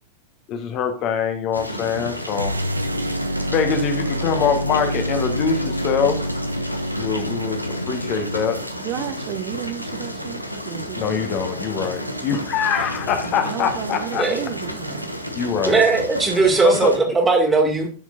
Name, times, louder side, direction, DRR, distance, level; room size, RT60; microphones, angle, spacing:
voice 1, 0.5-2.5 3.5-6.2 6.9-7.6 7.9-8.6 11.0-14.3 15.3-15.8 16.6-16.9, left 6 dB, 40° left, 1.2 m, -23 dB
sound 1, 1.5-17.0, equal, 90° left, 0.9 m, -31 dB
sound 2, 2.3-8.6, equal, 80° right, 0.4 m, -27 dB
voice 2, 8.8-11.2 13.4-15.1, right 10 dB, 40° right, 0.7 m, -32 dB
voice 3, 15.7-17.9, right 3 dB, 15° right, 2.0 m, -18 dB
10.5 x 6.4 x 2.5 m
figure-of-eight pair, 90°, 0 cm